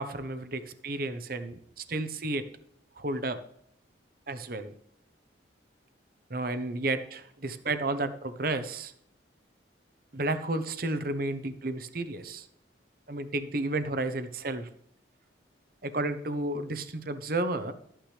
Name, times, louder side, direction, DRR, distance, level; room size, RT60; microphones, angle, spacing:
voice 1, 0.0-2.5 3.0-3.4 4.3-4.7 6.3-8.9 10.1-12.5 13.1-14.7 15.8-17.7, right 2 dB, 50° right, 10 dB, 0.9 m, -32 dB
13.5 x 9.1 x 3.4 m, 0.68 s
head